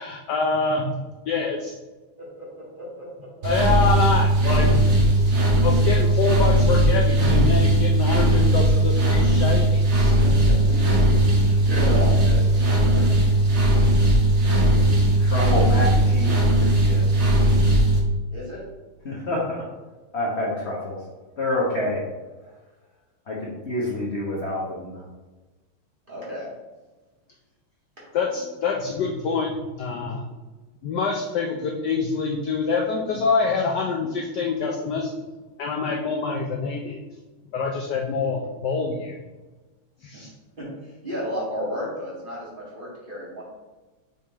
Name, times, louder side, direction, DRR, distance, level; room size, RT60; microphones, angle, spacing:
voice 1, 0.0-1.0 1.3-1.7 3.4-5.0 5.6-10.1 28.1-30.2 30.8-35.1 35.6-37.0 37.5-39.2 40.0-40.3, left 4 dB, 70° left, 0 dB, 1.0 m, -25 dB
voice 2, 2.2-2.5 2.8-2.9 3.4-3.5 10.0-11.0 11.4-13.2 18.3-18.6 19.1-19.3 26.1-26.5 40.1-40.2 40.6-43.4, equal, 25° right, -6 dB, 1.8 m, -33 dB
sound 1, 3.4-18.0, right 1 dB, 40° right, 1.1 m, -18 dB
voice 3, 15.2-17.1 19.0-19.6 20.1-21.0 21.4-22.0 23.3-25.0, left 1 dB, 45° left, -5 dB, 0.9 m, -27 dB
6.0 x 3.7 x 4.3 m, 1.2 s
omnidirectional pair, 2.4 m